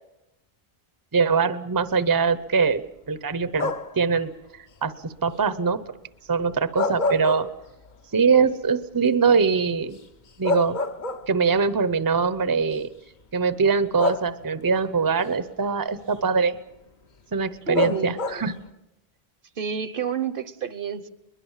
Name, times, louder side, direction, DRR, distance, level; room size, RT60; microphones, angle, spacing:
voice 1, 1.1-2.8 3.1-4.3 4.8-4.9 5.2-5.8 6.3-7.5 8.1-10.0 10.4-10.8 11.3-12.9 13.3-16.6 17.3-18.5, right 5 dB, 25° right, 14 dB, 0.7 m, -22 dB
sound 1, 3.6-4.1 6.5-7.9 8.3-8.4 10.0-10.1 10.4-11.6 12.6-12.7 14.0-14.7 17.7-18.6, left 3 dB, 50° left, 1.0 m, -27 dB
voice 2, 17.6-18.4 19.6-21.1, right 6 dB, 60° right, 14 dB, 1.1 m, -30 dB
22.0 x 21.5 x 7.3 m, 0.93 s
omnidirectional pair, 1.0 m